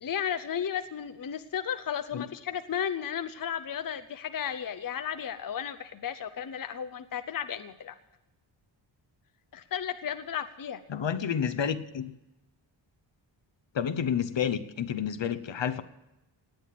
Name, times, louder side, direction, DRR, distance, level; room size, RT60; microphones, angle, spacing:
voice 1, 0.0-8.0 9.5-10.8, left 8 dB, 45° left, 10 dB, 0.7 m, -34 dB
voice 2, 10.9-12.1 13.7-15.8, left 8 dB, 65° left, 12 dB, 1.0 m, -30 dB
18.5 x 9.1 x 7.6 m, 0.96 s
wide cardioid pair, 115°, 48 cm